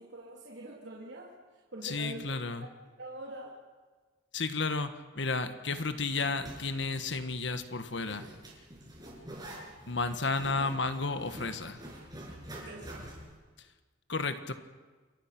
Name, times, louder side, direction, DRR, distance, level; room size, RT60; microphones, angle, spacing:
voice 1, 0.0-1.3 1.7-2.4 2.6-2.7 3.0-3.6 12.5-13.1, right 1 dB, 70° right, -3 dB, 3.5 m, -44 dB
voice 2, 1.8-2.7 4.3-8.2 9.8-11.8 14.1-14.5, left 3 dB, 70° left, 10 dB, 1.5 m, -32 dB
Zipper (clothing), 6.1-13.4, right 1 dB, 20° right, 7.2 m, -47 dB
28.5 x 23.0 x 6.1 m, 1.4 s
head